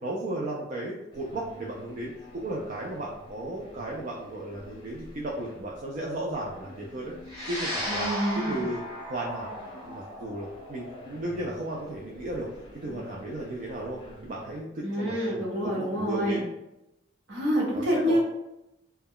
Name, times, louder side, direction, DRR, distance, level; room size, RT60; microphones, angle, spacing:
voice 1, 0.0-7.1 7.5-8.1 8.4-8.8 9.1-9.6 9.9-12.5 12.7-16.5 17.7-18.2, right 1 dB, 45° right, -3 dB, 0.4 m, -35 dB
sound 1, 1.1-14.6, equal, 25° left, 0.6 m, -50 dB
sound 2, 7.3-15.8, equal, 20° right, 1.0 m, -38 dB
voice 2, 7.9-8.7 14.8-16.4 17.3-18.2, equal, 70° right, -5 dB, 1.0 m, -27 dB
2.2 x 2.1 x 3.6 m, 0.91 s
head